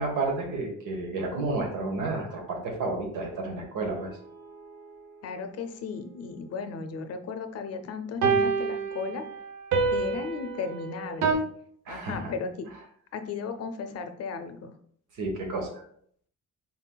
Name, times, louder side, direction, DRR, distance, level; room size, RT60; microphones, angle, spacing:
voice 1, 0.0-4.1 11.9-12.3 15.2-15.8, right 3 dB, 85° right, 2 dB, 1.3 m, -31 dB
sound 1, 4.0-4.1 8.2-11.3, right 5 dB, 65° right, 0.8 m, -27 dB
voice 2, 5.2-9.2 9.9-11.4 11.9-12.7 13.1-14.7, left 5 dB, 55° left, 8 dB, 0.5 m, -35 dB
5.6 x 4.1 x 2.2 m, 0.63 s
cardioid pair, 175°, 31 cm